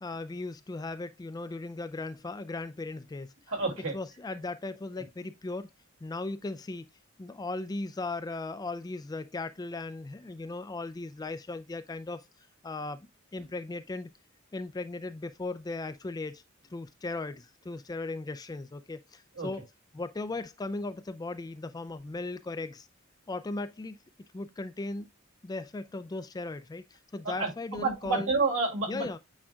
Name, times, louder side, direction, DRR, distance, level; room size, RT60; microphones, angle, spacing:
voice 1, 0.0-3.3 3.9-5.7 6.0-6.9 7.2-12.2 12.6-14.1 14.5-16.4 16.7-19.6 19.9-22.9 23.3-24.0 24.3-25.1 25.4-28.3 28.9-29.2, left 2 dB, 20° left, 0.3 m, -37 dB
voice 2, 3.5-3.9 19.4-19.5 27.2-29.1, right 3 dB, 75° right, 2.5 m, -29 dB
8.6 x 4.9 x 2.3 m
head